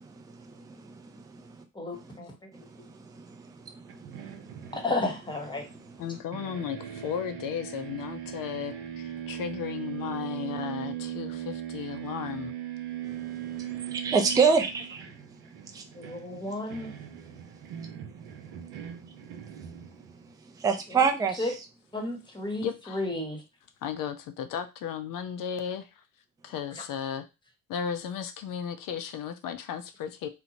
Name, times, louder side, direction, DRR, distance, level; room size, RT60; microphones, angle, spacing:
voice 1, 0.0-1.6 1.9-2.1 2.5-4.7 5.6-5.9 13.0-15.1 15.7-15.8 20.6-21.7, right 5 dB, 10° right, 5 dB, 0.4 m, -29 dB
voice 2, 1.8-2.3 4.7-5.6 16.0-16.9 21.4-21.5 21.9-23.4, left 2 dB, 10° left, 3 dB, 1.0 m, -32 dB
sound 1, 3.9-6.1 6.3-20.3, right 11 dB, 60° right, 0.7 m, -39 dB
voice 3, 6.0-12.5 22.6-23.0 23.8-25.9 26.4-27.2 27.7-30.3, left 8 dB, 50° left, 9 dB, 0.5 m, -35 dB
2.8 x 2.0 x 2.8 m, 0.26 s
hypercardioid pair, 60°, 45 cm